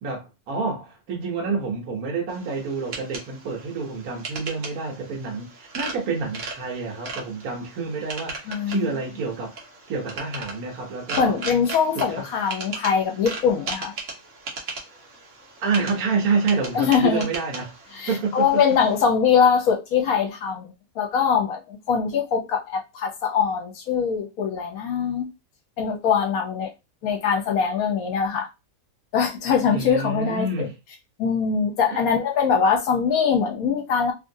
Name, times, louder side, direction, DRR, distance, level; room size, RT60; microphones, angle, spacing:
voice 1, 0.0-9.5 9.9-11.4 11.9-12.3 15.6-17.7 18.1-18.6 29.7-30.7 31.9-32.1, right 4 dB, 75° right, 1.3 m, -28 dB
sound 1, 2.3-19.0, right 3 dB, 60° right, 1.1 m, -38 dB
voice 2, 8.5-8.9 11.2-13.9 16.7-17.3 17.9-25.3 25.8-26.7 27.0-28.5 29.1-30.7 31.2-34.1, left 6 dB, 75° left, 1.2 m, -22 dB
3.0 x 2.5 x 2.6 m
omnidirectional pair, 1.6 m